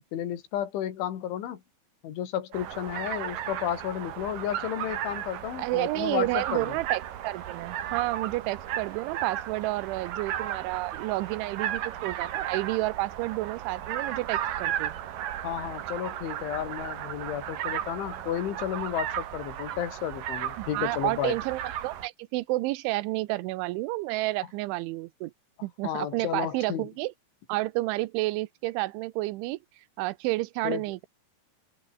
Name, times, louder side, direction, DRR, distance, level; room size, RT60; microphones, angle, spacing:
voice 1, 0.1-1.6 2.0-6.8 15.4-21.4 25.8-26.9 30.6-30.8, left 10 dB, 80° left, 5.0 m, -32 dB
sound 1, 2.5-22.1, right 11 dB, 60° right, 2.8 m, -35 dB
voice 2, 5.6-14.9 20.6-25.3 25.6-27.1 27.5-29.6 30.0-31.1, right 19 dB, 85° right, 3.2 m, -30 dB
open air
omnidirectional pair, 5.3 m